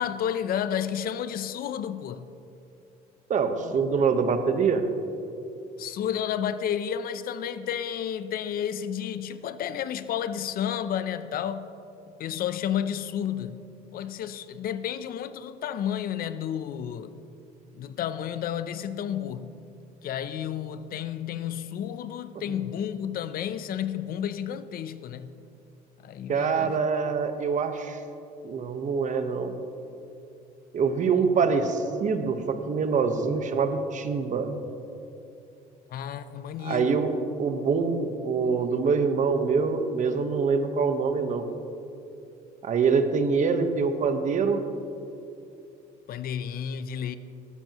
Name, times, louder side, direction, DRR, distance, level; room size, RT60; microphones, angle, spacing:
voice 1, 0.0-2.3 3.6-3.8 5.8-11.7 12.2-17.1 17.7-19.5 20.0-25.4 26.0-26.8 35.9-37.0 46.1-47.2, left 9 dB, 60° left, 0.6 m, -31 dB
voice 2, 3.3-4.8 26.3-28.0 28.4-29.5 30.7-34.5 36.6-37.1 37.4-41.4 42.6-44.6, right 5 dB, 45° right, 1.2 m, -25 dB
18.0 x 14.0 x 3.0 m
cardioid pair, 110°, 17 cm